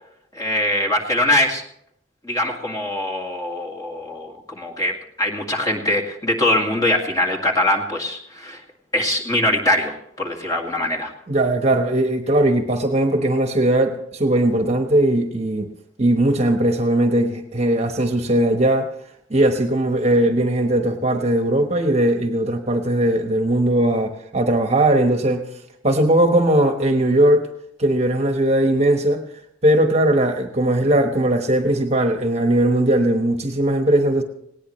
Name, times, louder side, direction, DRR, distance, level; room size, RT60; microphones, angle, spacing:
voice 1, 0.3-1.6 2.2-8.6 8.9-11.1, left 1 dB, 20° left, -1 dB, 2.2 m, -22 dB
voice 2, 11.3-15.7 16.0-18.9 19.3-25.5 25.8-27.5 27.8-29.2 29.6-34.2, right 1 dB, 35° right, 5 dB, 1.2 m, -19 dB
19.0 x 18.0 x 3.2 m, 0.72 s
head